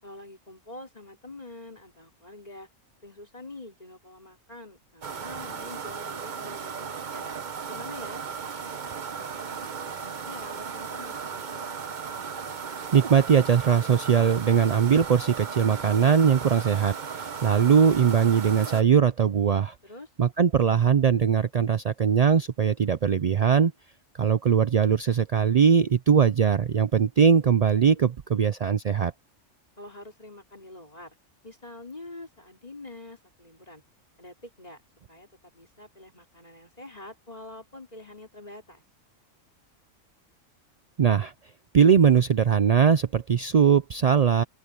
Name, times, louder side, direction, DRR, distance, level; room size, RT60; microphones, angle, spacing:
voice 1, 0.0-2.7 3.0-7.3 7.7-11.7 19.8-20.1 29.8-31.2 31.4-33.8 34.2-34.8 35.1-38.8, left 2 dB, 30° left, 4.5 m, -46 dB
sound 1, 5.0-18.8, right 6 dB, 40° right, 0.9 m, -36 dB
voice 2, 12.9-19.7 20.2-23.7 24.2-29.1 41.0-41.3 41.7-44.4, right 7 dB, 70° right, 0.3 m, -21 dB
open air
omnidirectional pair, 1.4 m